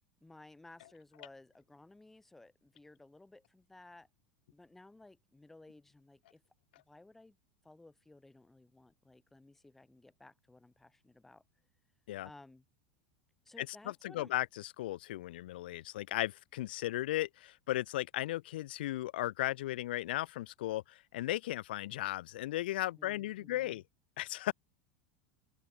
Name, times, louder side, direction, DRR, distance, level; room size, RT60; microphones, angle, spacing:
voice 1, 0.2-4.1 4.5-6.4 6.9-7.4 7.6-11.4 12.2-12.6 13.4-14.3 23.0-23.8, left 2 dB, 5° left, 4.6 m, -57 dB
voice 2, 13.6-23.8 24.2-24.5, left 15 dB, 85° left, 0.9 m, -36 dB
open air
supercardioid pair, 165°, 5 cm